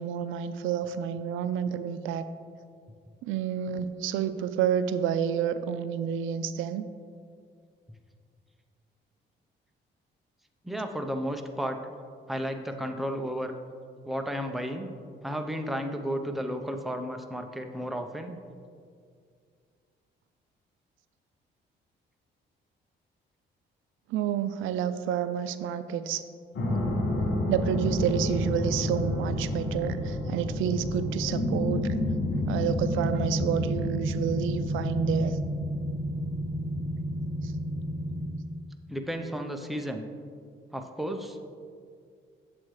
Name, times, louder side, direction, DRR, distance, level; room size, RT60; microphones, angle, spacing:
voice 1, 0.0-2.3 3.2-6.9 24.1-26.2 27.5-31.9 32.5-35.4 37.4-37.5, right 8 dB, 90° right, 11 dB, 0.4 m, -29 dB
voice 2, 10.6-11.8 12.3-13.5 14.0-14.9 15.2-18.4 38.9-40.1 40.7-41.4, equal, ahead, 5 dB, 0.6 m, -33 dB
sound 1, 26.5-38.3, left 1 dB, 75° left, 1.5 m, -30 dB
8.5 x 7.6 x 3.2 m, 2.2 s
cardioid pair, 90°, 20 cm